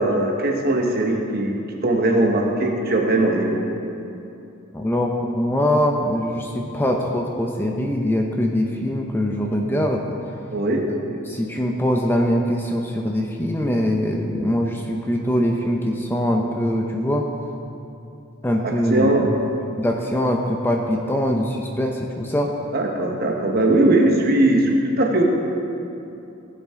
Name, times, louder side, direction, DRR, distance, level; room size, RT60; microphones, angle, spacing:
voice 1, 0.0-3.6 10.5-10.8 18.9-19.2 22.7-25.2, right 1 dB, 45° right, 1 dB, 1.2 m, -19 dB
voice 2, 4.7-10.2 11.3-17.3 18.4-19.3 19.8-22.5, equal, 10° left, 1 dB, 0.5 m, -22 dB
16.0 x 7.4 x 3.7 m, 2.8 s
head